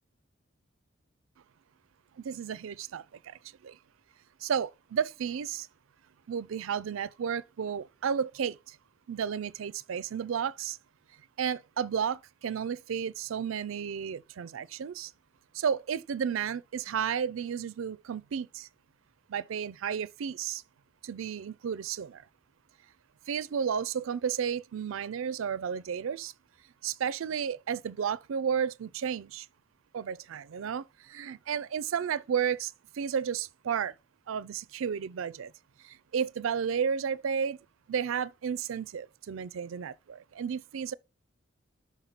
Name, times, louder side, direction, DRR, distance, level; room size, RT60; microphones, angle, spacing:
voice 1, 2.2-3.8 4.4-5.7 6.3-8.8 9.1-10.8 11.4-15.1 15.5-18.7 19.3-20.6 21.0-22.2 23.3-26.3 26.8-29.5 29.9-33.9 34.3-35.5 35.8-37.6 37.9-40.9, right 7 dB, 75° right, 0.4 m, -32 dB
5.8 x 5.7 x 4.0 m
head